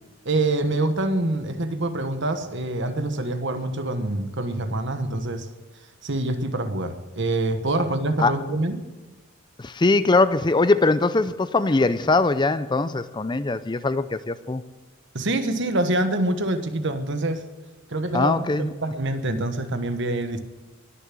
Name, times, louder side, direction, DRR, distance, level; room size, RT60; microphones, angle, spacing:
voice 1, 0.2-5.5 6.0-8.8 15.1-17.4 17.9-20.4, right 2 dB, 55° right, 9 dB, 1.3 m, -25 dB
voice 2, 9.6-14.6 18.1-18.7, left 3 dB, 20° left, 13 dB, 0.5 m, -21 dB
20.5 x 7.1 x 7.6 m, 1.2 s
head